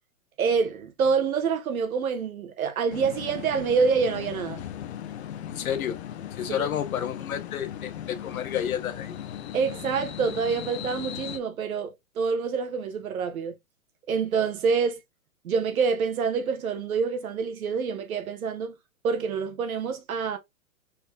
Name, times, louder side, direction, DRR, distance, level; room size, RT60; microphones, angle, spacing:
voice 1, 0.4-4.6 6.5-6.7 9.5-13.6 14.1-15.0 15.4-18.8 19.0-20.4, right 5 dB, 80° right, 1.2 m, -26 dB
sound 1, 2.9-11.4, left 10 dB, 50° left, 0.6 m, -37 dB
voice 2, 5.5-6.0 6.3-9.1, left 9 dB, 80° left, 1.0 m, -30 dB
4.2 x 3.3 x 2.3 m
hypercardioid pair, 160°, 42 cm